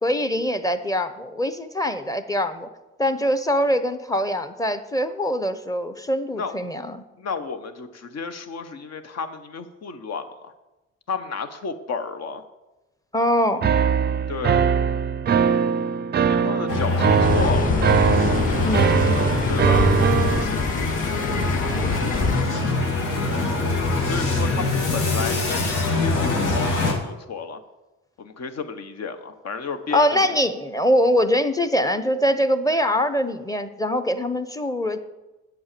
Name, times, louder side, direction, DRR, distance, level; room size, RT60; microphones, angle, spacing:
voice 1, 0.0-2.7 3.0-7.0 13.1-13.7 18.6-19.0 29.9-35.0, equal, 10° left, 10 dB, 0.9 m, -23 dB
voice 2, 7.2-10.5 11.1-12.4 14.3-14.7 16.3-17.9 19.5-19.9 24.0-27.6 28.2-30.4 31.8-32.0, left 5 dB, 60° left, 9 dB, 1.2 m, -32 dB
sound 1, 13.6-20.5, right 7 dB, 35° right, 0.5 m, -21 dB
sound 2, 16.7-26.9, left 3 dB, 85° left, 2.4 m, -23 dB
sound 3, 17.2-22.4, left 5 dB, 30° left, 0.5 m, -27 dB
8.6 x 7.8 x 6.8 m, 1.0 s
cardioid pair, 90°, 30 cm